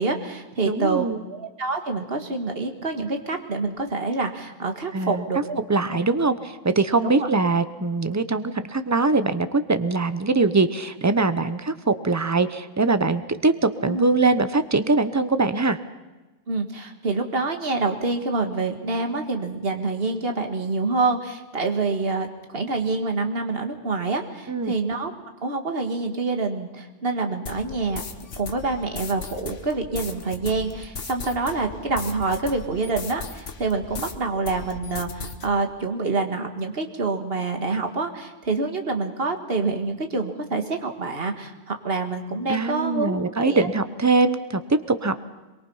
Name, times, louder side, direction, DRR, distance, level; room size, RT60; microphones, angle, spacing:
voice 1, 0.0-5.6 7.0-7.3 13.9-14.1 16.5-25.1 25.4-28.0 28.4-43.7, right 3 dB, 55° right, 5 dB, 2.0 m, -27 dB
voice 2, 0.7-1.2 4.9-5.2 5.7-15.8 24.5-24.7 42.5-45.1, right 3 dB, 15° right, 11 dB, 0.7 m, -22 dB
sound 1, 27.5-34.2 34.5-35.5, left 5 dB, 80° left, 1.8 m, -37 dB
24.0 x 23.0 x 5.6 m, 1.2 s
omnidirectional pair, 1.2 m